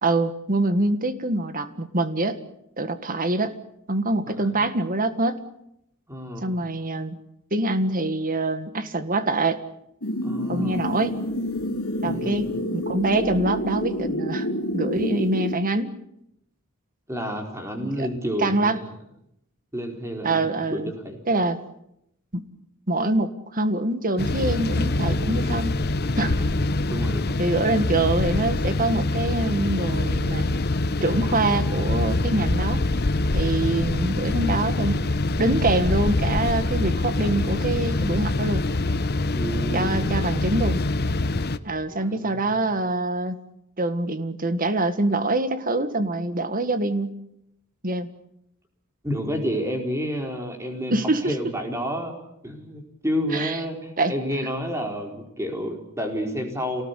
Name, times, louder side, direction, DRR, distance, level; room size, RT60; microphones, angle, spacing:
voice 1, 0.0-2.4 2.8-3.5 3.9-5.4 6.4-7.2 7.5-9.6 10.5-11.2 12.0-14.5 14.7-15.9 17.8-18.1 18.4-18.8 20.2-20.9 21.3-21.6 22.3-22.4 22.9-25.7 26.2-26.3 27.4-30.5 31.0-32.8 33.3-35.0 35.4-38.6 39.7-40.8 41.6-43.4 43.8-47.1 47.8-48.1 50.9-51.3 53.3-53.6 54.0-54.1, right 2 dB, 40° right, 11 dB, 1.8 m, -25 dB
voice 2, 4.3-4.6 6.1-6.6 10.2-10.9 12.0-12.6 17.1-18.9 19.7-21.2 25.0-25.7 26.2-26.6 26.9-27.5 39.4-40.3 41.9-42.6 49.0-50.9 51.2-52.2 52.4-56.8, equal, 15° right, 3 dB, 4.5 m, -30 dB
sound 1, 10.0-15.5, equal, 80° left, 3.2 m, -28 dB
sound 2, 24.2-41.6, left 2 dB, 50° left, 0.9 m, -24 dB
27.5 x 18.5 x 8.4 m, 0.79 s
head